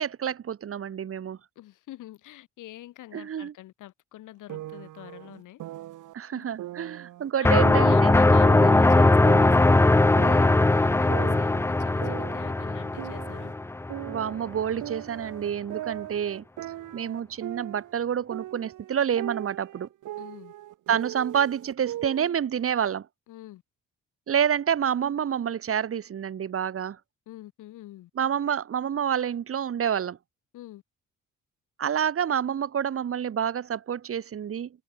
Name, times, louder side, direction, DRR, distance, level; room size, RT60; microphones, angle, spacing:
voice 1, 0.0-1.4 3.1-3.5 6.1-8.2 14.1-16.4 16.9-19.9 20.9-23.1 24.3-27.0 28.2-30.2 31.8-34.7, right 8 dB, 50° right, 1.3 m, -28 dB
voice 2, 1.6-5.6 6.3-6.5 7.4-13.5 20.2-20.5 23.3-23.6 27.3-28.1 30.5-30.8, left 15 dB, 85° left, 7.1 m, -45 dB
sound 1, 4.5-6.1 6.6-8.2 8.4-10.7 11.1-13.5 13.9-18.0 18.3-22.3, right 14 dB, 85° right, 4.8 m, -39 dB
sound 2, 7.4-14.2, left 2 dB, 10° left, 0.5 m, -20 dB
cardioid pair, 90°, 30 cm